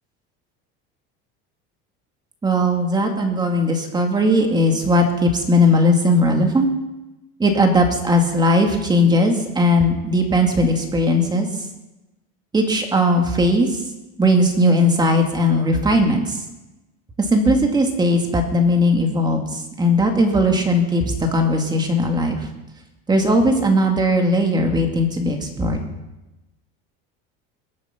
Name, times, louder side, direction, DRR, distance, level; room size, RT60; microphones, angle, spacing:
voice 1, 2.4-6.7 7.4-11.7 12.5-13.8 14.2-16.4 17.2-22.5 23.1-25.8, left 1 dB, 15° right, 3 dB, 2.3 m, -18 dB
21.5 x 8.4 x 5.9 m, 1.0 s
cardioid pair, 145°, 29 cm